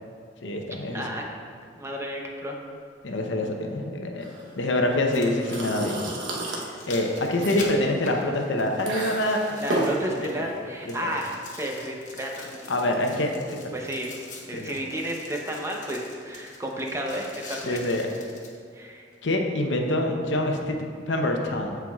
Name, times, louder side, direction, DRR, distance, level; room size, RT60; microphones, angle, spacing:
voice 1, 0.4-1.0 3.0-4.3 4.6-6.0 6.5-9.4 9.8-9.9 10.2-10.3 10.8-10.9 12.7-13.6 14.5-14.7 17.6-18.1 19.2-20.8 21.1-21.8, left 1 dB, 85° left, 2 dB, 0.8 m, -26 dB
voice 2, 0.9-1.2 1.8-2.6 9.5-12.5 13.7-14.1 14.5-17.8 18.7-19.0, equal, 15° right, 0 dB, 0.7 m, -32 dB
sound 1, 1.6-1.7 3.6-3.7 4.9-10.6 10.9-18.6 19.1-19.2, left 3 dB, 45° left, 1.0 m, -44 dB
sound 2, 4.2-15.1, right 2 dB, 85° right, 1.0 m, -35 dB
13.5 x 4.6 x 2.4 m, 2.2 s
head